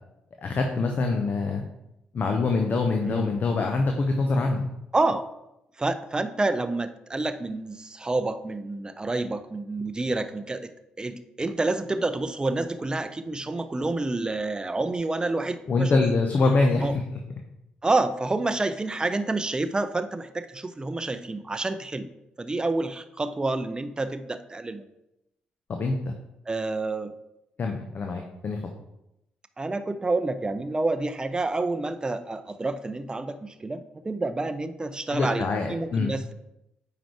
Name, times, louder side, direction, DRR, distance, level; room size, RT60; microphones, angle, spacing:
voice 1, 0.4-1.6 2.1-4.6 15.7-16.9 25.7-26.1 27.6-28.6 35.1-36.1, left 3 dB, 45° left, 3 dB, 0.8 m, -24 dB
voice 2, 4.9-5.3 5.8-10.7 11.0-16.0 16.8-16.9 17.8-22.1 22.4-24.8 26.5-27.1 29.6-35.4 35.7-36.3, right 2 dB, 20° right, 10 dB, 0.6 m, -28 dB
8.9 x 4.9 x 3.3 m, 0.87 s
figure-of-eight pair, 40°, 4 cm